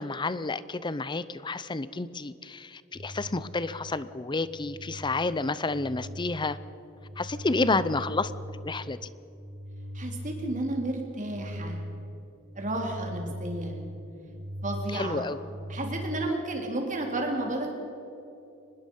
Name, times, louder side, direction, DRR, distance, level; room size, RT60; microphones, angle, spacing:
voice 1, 0.0-6.6 7.2-8.3 8.6-9.0 14.9-15.4, left 3 dB, 25° left, 16 dB, 0.6 m, -30 dB
sound 1, 2.9-16.3, equal, 60° right, 4.0 m, -40 dB
voice 2, 9.9-11.8 12.5-13.8 14.6-15.2 15.7-17.7, right 2 dB, 40° right, 1 dB, 3.4 m, -32 dB
24.5 x 20.5 x 5.5 m, 2.8 s
head